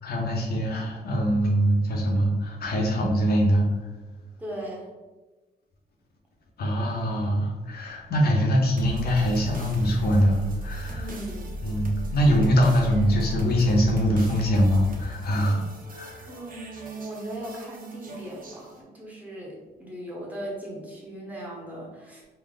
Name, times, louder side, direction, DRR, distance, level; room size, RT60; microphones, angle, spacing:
voice 1, 0.0-3.7 6.6-11.1 11.6-16.3, equal, 65° left, -1 dB, 0.7 m, -23 dB
voice 2, 4.4-4.9 10.9-11.6 16.3-22.2, right 1 dB, 10° right, -4 dB, 1.0 m, -38 dB
sound 1, 8.8-18.8, left 1 dB, 55° right, 0.7 m, -36 dB
3.3 x 2.0 x 3.8 m, 1.2 s
cardioid pair, 110°, 17 cm